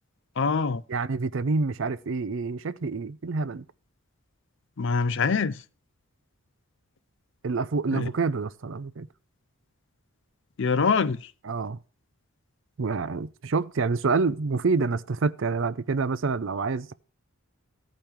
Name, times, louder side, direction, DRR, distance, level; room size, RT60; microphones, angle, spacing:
voice 1, 0.4-0.8 4.8-5.6 7.9-8.1 10.6-11.3, left 5 dB, 55° left, 0.5 m, -24 dB
voice 2, 0.9-3.6 7.4-9.1 11.4-11.8 12.8-16.9, right 4 dB, 60° right, 0.5 m, -27 dB
15.0 x 5.2 x 4.5 m
head